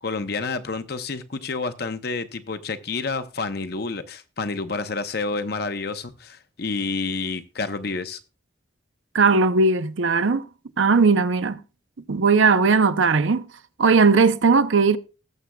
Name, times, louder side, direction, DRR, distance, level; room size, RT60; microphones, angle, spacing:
voice 1, 0.0-8.2, left 3 dB, 55° left, 0.7 m, -29 dB
voice 2, 9.1-10.5 10.8-11.6 12.1-13.4 13.8-15.0, right 4 dB, 80° right, 0.6 m, -18 dB
19.0 x 7.2 x 2.3 m
head